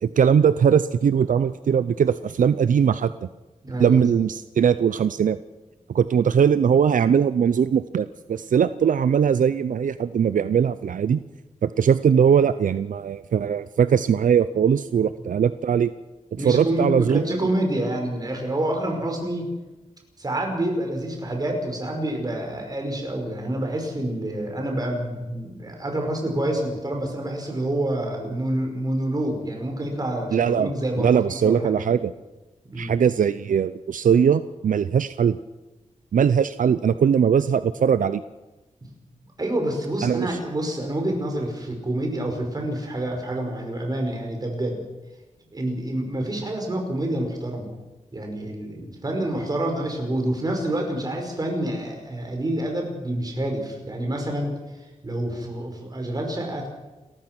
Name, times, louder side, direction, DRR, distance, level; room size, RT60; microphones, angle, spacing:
voice 1, 0.0-3.3 3.8-5.4 5.9-11.2 11.6-15.9 16.4-17.2 30.3-30.7 31.0-32.1 32.8-35.4 36.1-38.2 40.0-40.4, right 7 dB, 80° right, 14 dB, 0.6 m, -20 dB
voice 2, 3.6-4.2 16.4-19.5 20.2-31.9 32.6-32.9 39.4-44.8 45.5-47.7 48.1-56.7, right 1 dB, 30° right, 2 dB, 5.4 m, -27 dB
29.5 x 14.5 x 6.1 m, 1.1 s
wide cardioid pair, 145°, 13 cm